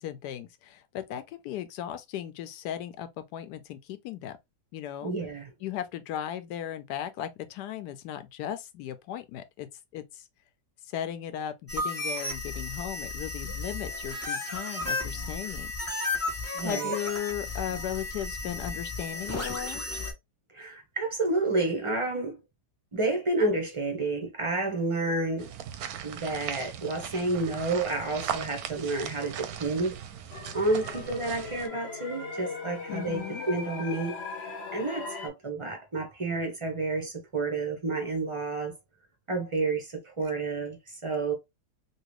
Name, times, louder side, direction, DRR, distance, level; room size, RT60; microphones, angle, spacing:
voice 1, 0.0-4.4 4.7-5.1 5.6-9.7 9.9-10.2 10.9-15.7 16.1-16.3 16.6-19.8 32.9-33.5, left 10 dB, 80° left, 1.1 m, -36 dB
voice 2, 5.0-5.5 16.5-16.9 20.5-22.4 22.9-25.5 26.0-29.9 30.5-34.2 34.7-38.7 39.3-40.8 41.0-41.3, right 2 dB, 40° right, 0.4 m, -30 dB
sound 1, 11.7-20.1, left 2 dB, 10° left, 0.9 m, -34 dB
sound 2, 25.4-31.7, right 9 dB, 70° right, 1.0 m, -38 dB
sound 3, 30.3-35.3, left 4 dB, 55° left, 0.8 m, -39 dB
3.0 x 2.8 x 3.0 m
omnidirectional pair, 1.8 m